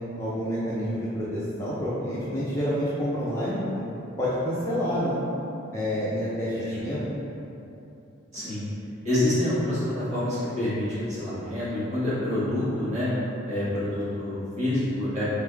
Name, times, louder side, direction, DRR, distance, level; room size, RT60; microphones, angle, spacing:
voice 1, 0.2-3.8 4.2-5.2 5.7-7.0, equal, 10° left, -10 dB, 0.5 m, -28 dB
voice 2, 9.0-13.1 13.5-15.2, left 1 dB, 35° right, -11 dB, 1.4 m, -27 dB
3.9 x 3.5 x 3.4 m, 2.9 s
head